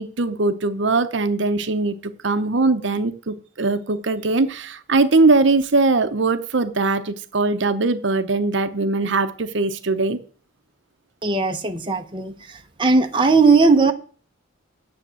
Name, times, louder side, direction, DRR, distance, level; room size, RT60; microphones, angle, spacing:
voice 1, 0.0-10.2, right 3 dB, 65° right, 0.8 m, -21 dB
voice 2, 11.2-12.3 12.8-13.9, right 4 dB, 25° right, 0.9 m, -17 dB
9.6 x 7.1 x 7.6 m
head